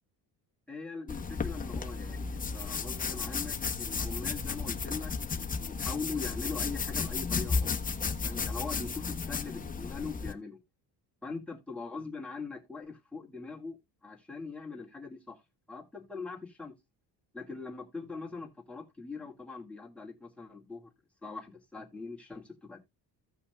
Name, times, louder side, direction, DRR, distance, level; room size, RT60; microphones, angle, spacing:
voice 1, 0.7-7.8 8.2-10.6 11.2-15.4 15.7-16.7 17.3-20.9 21.2-22.8, left 4 dB, 5° left, 1.9 m, -42 dB
sound 1, 1.1-10.3, left 5 dB, 20° left, 1.0 m, -34 dB
16.0 x 5.6 x 2.2 m
cardioid pair, 145°, 39 cm